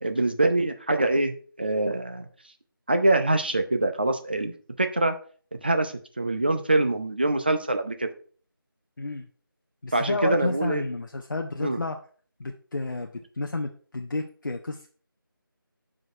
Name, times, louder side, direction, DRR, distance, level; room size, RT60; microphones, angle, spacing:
voice 1, 0.0-2.3 2.9-4.5 4.8-5.2 5.6-8.1 9.9-10.8 11.6-11.8, right 2 dB, 25° right, 7 dB, 0.5 m, -24 dB
voice 2, 9.0-9.3 9.8-12.0 12.4-13.1 13.4-14.9, left 2 dB, 55° left, 3 dB, 0.7 m, -31 dB
6.0 x 5.0 x 4.5 m, 0.42 s
figure-of-eight pair, 170°, 12 cm